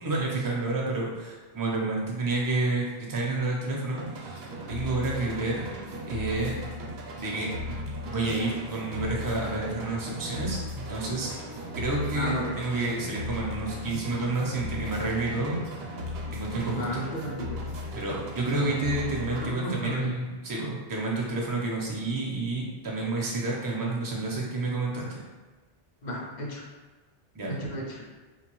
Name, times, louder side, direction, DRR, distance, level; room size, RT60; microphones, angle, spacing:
voice 1, 0.0-4.4 4.7-5.7 6.1-6.6 7.1-7.8 8.1-11.4 11.7-15.6 16.3-17.0 17.9-25.2 27.3-27.6, right 2 dB, 35° right, -3 dB, 0.4 m, -30 dB
sound 1, 4.0-19.5, left 1 dB, 75° right, 0.8 m, -37 dB
voice 2, 12.1-12.5 16.6-17.7 18.5-18.8 19.3-20.1 26.0-26.6 27.5-28.0, equal, 55° left, -3 dB, 0.6 m, -33 dB
2.8 x 2.2 x 3.0 m, 1.3 s
omnidirectional pair, 1.1 m